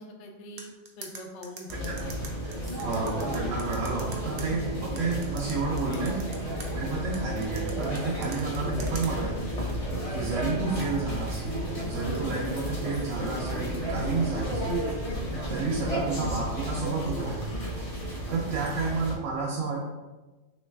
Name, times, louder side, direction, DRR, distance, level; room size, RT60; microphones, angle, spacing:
voice 1, 0.0-2.2 4.4-4.5 12.0-12.1 15.1-15.4 18.5-18.7, left 2 dB, 70° left, 2 dB, 0.9 m, -43 dB
sound 1, 0.6-4.4 5.0-6.7 7.1-9.1, right 4 dB, 55° right, 0.6 m, -42 dB
sound 2, 1.7-19.2, equal, 35° left, 0.6 m, -32 dB
voice 2, 2.9-4.6 5.0-6.2 6.7-9.4 10.1-11.5 11.8-14.7 15.5-17.6 18.3-19.9, right 4 dB, 80° right, -3 dB, 1.0 m, -31 dB
3.2 x 3.1 x 3.3 m, 1.2 s
omnidirectional pair, 1.3 m